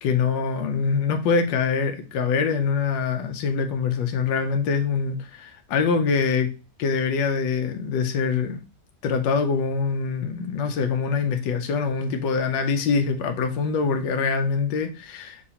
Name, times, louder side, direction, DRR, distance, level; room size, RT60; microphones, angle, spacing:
voice 1, 0.0-6.5 6.8-8.6 9.0-15.5, left 5 dB, 85° left, 1.3 m, -24 dB
5.8 x 2.8 x 2.8 m
omnidirectional pair, 1.9 m